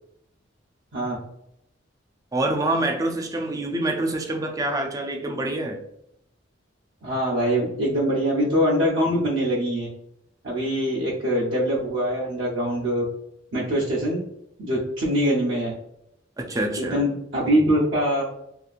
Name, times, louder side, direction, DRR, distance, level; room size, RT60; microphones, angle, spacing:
voice 1, 2.3-5.8 16.4-17.0, right 2 dB, 20° right, 3 dB, 0.3 m, -26 dB
voice 2, 7.0-9.9 10.4-13.0 13.5-14.2 14.6-15.7 16.8-18.2, equal, 80° right, -7 dB, 0.7 m, -23 dB
2.8 x 2.4 x 2.4 m, 0.77 s
head